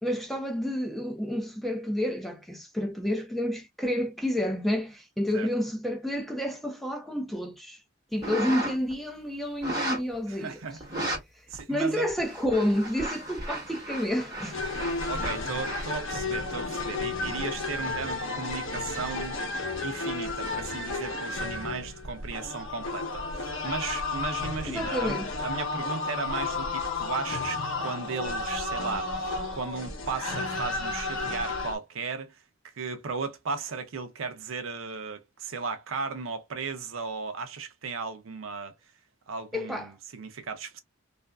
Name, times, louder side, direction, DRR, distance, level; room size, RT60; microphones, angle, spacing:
voice 1, 0.0-7.8 8.1-10.6 11.7-14.6 24.7-25.3 39.5-39.9, equal, ahead, 0.5 m, -29 dB
sound 1, 8.2-8.9 9.6-10.1 10.8-11.2 11.5-11.6 12.1-15.9, right 1 dB, 15° right, 1.3 m, -35 dB
voice 2, 10.3-10.8 11.5-12.1 15.1-19.4 19.8-32.3 32.6-38.7 39.3-40.8, right 4 dB, 70° right, 0.6 m, -36 dB
sound 2, 14.5-31.8, left 3 dB, 65° left, 0.8 m, -32 dB
2.4 x 2.3 x 2.2 m
head